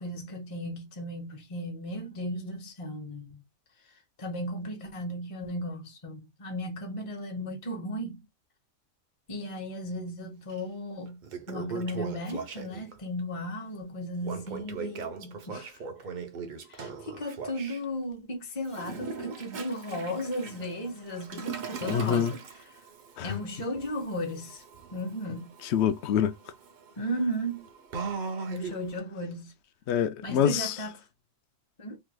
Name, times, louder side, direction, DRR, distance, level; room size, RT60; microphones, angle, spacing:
voice 1, 0.0-3.4 3.9-8.3 9.3-15.8 16.7-22.4 23.2-24.6 24.9-25.5 27.0-27.7 28.5-29.5 30.2-30.9 31.8-32.0, equal, 30° left, 0.9 m, -35 dB
Toilet flush, 10.5-10.6 11.1-13.0 14.2-17.8 18.6-29.0, right 5 dB, 50° right, 0.6 m, -40 dB
voice 2, 21.8-22.3 23.2-23.4 25.6-26.3 29.9-30.8, left 9 dB, 65° left, 0.8 m, -26 dB
3.3 x 3.1 x 2.2 m
omnidirectional pair, 1.3 m